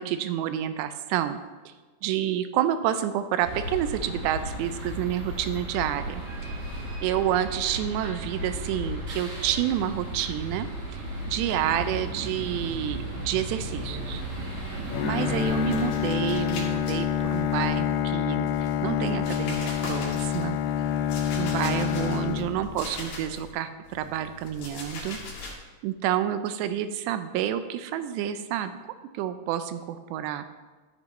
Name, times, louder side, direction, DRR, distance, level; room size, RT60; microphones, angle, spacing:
voice 1, 0.0-1.7 2.0-6.5 7.0-14.2 15.0-18.5 18.8-20.6 21.4-25.6 25.8-28.7 29.1-30.5, right 11 dB, 85° right, 10 dB, 2.8 m, -29 dB
sound 1, 3.4-15.9, right 1 dB, 40° right, 4.5 m, -35 dB
sound 2, 14.8-18.1 18.4-23.5 23.8-25.6, left 2 dB, 65° left, 3.5 m, -41 dB
Bowed string instrument, 14.9-23.1, left 9 dB, 85° left, 2.2 m, -27 dB
13.0 x 8.3 x 3.1 m, 1.3 s
omnidirectional pair, 4.9 m